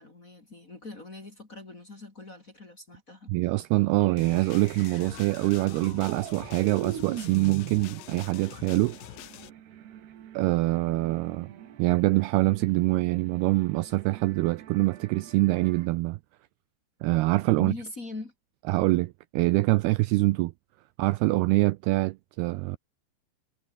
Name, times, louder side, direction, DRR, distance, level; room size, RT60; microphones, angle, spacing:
voice 1, 0.0-3.3 17.6-18.3, left 3 dB, 25° left, 2.2 m, -42 dB
voice 2, 3.3-9.0 10.3-11.5 11.8-16.2 17.0-17.7 18.7-20.5 21.0-22.8, right 21 dB, 85° right, 2.3 m, -25 dB
sound 1, 4.0-15.9, right 10 dB, 70° right, 4.2 m, -44 dB
sound 2, 4.2-9.5, left 18 dB, 85° left, 2.1 m, -45 dB
sound 3, 4.3-8.3, right 3 dB, 35° right, 6.8 m, -58 dB
omnidirectional pair, 5.1 m